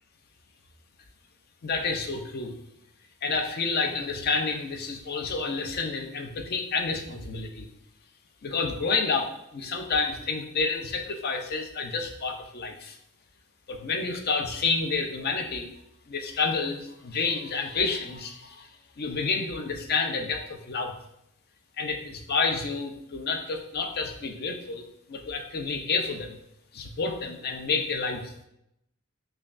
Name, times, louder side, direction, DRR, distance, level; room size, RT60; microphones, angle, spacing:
voice 1, 1.6-2.5 3.2-7.7 8.4-13.0 13.7-15.7 16.1-18.7 19.0-20.9 21.8-24.8 25.1-26.4 26.7-28.4, left 4 dB, 45° left, 4 dB, 0.5 m, -29 dB
5.5 x 2.3 x 2.5 m, 0.78 s
head